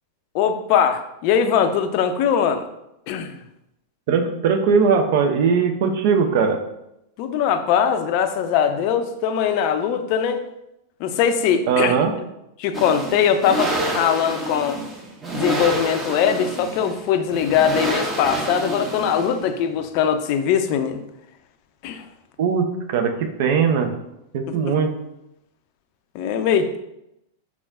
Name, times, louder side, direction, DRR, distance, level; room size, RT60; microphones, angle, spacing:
voice 1, 0.3-2.6 3.1-3.4 7.2-10.4 11.0-12.0 12.6-14.8 15.3-21.0 21.8-22.0 24.6-24.7 26.1-26.8, left 8 dB, 45° left, 8 dB, 0.4 m, -21 dB
voice 2, 4.1-6.6 11.7-12.1 22.4-23.9 24.3-24.9, right 6 dB, 50° right, 5 dB, 0.6 m, -19 dB
sound 1, 12.7-19.5, right 2 dB, 20° right, 0.9 m, -28 dB
6.0 x 3.6 x 2.5 m, 0.86 s
figure-of-eight pair, 90°, 0 cm